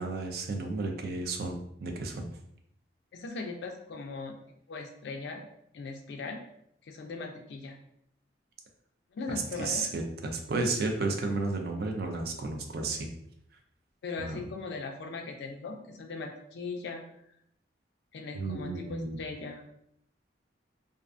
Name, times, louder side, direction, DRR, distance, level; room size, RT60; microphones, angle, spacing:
voice 1, 0.0-2.3 9.6-13.1 14.2-14.4 18.3-19.2, right 3 dB, 55° right, 3 dB, 0.4 m, -32 dB
voice 2, 3.1-4.4 4.7-5.5 5.7-6.4 6.8-7.8 9.1-9.8 14.0-17.1 18.1-19.6, left 3 dB, 65° left, 4 dB, 0.3 m, -39 dB
2.4 x 2.3 x 2.4 m, 0.72 s
head